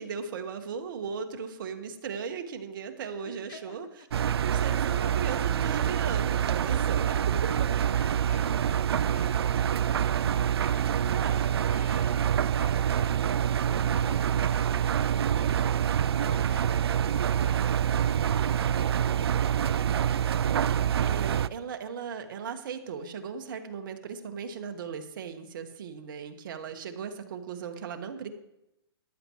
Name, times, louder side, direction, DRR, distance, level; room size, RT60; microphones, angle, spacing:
voice 1, 0.0-3.9 4.4-7.5 10.9-11.8 17.6-18.1 20.1-28.3, right 6 dB, 55° right, 6 dB, 1.4 m, -38 dB
voice 2, 3.2-3.9 4.3-4.4 7.9-9.7 10.0-19.4, left 8 dB, 40° left, 8 dB, 1.3 m, -52 dB
Engine, 4.1-21.5, right 9 dB, 75° right, 0.4 m, -26 dB
14.0 x 10.5 x 3.1 m, 0.88 s
hypercardioid pair, 145°, 13 cm